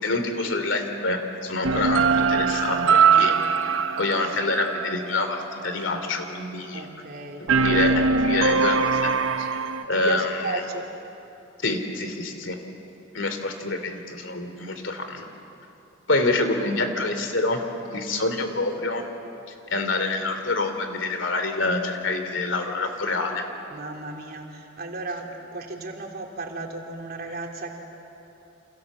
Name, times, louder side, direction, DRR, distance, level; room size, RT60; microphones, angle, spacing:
voice 1, 0.0-3.4 4.0-6.8 7.4-9.1 9.4-10.6 11.6-12.6 13.1-15.3 16.1-17.6 17.9-19.0 19.7-23.4, left 2 dB, 65° left, 7 dB, 3.1 m, -27 dB
sound 1, 1.6-5.3 7.5-9.8, right 5 dB, 80° right, 1.0 m, -21 dB
voice 2, 6.7-7.7 9.9-10.9 23.7-27.8, right 2 dB, 50° right, 1 dB, 3.2 m, -35 dB
28.5 x 27.5 x 7.5 m, 2.9 s
head